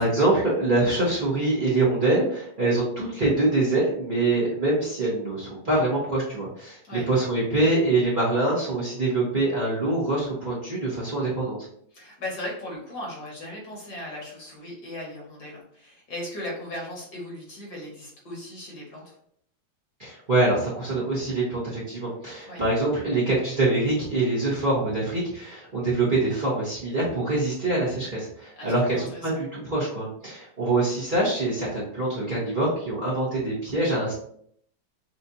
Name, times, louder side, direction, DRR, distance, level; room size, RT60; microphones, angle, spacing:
voice 1, 0.0-11.7 20.0-34.1, right 2 dB, 35° right, -7 dB, 1.0 m, -24 dB
voice 2, 11.9-19.1 22.5-22.6 28.6-29.4, left 1 dB, 55° left, -3 dB, 2.0 m, -37 dB
6.0 x 2.4 x 2.7 m, 0.66 s
omnidirectional pair, 2.1 m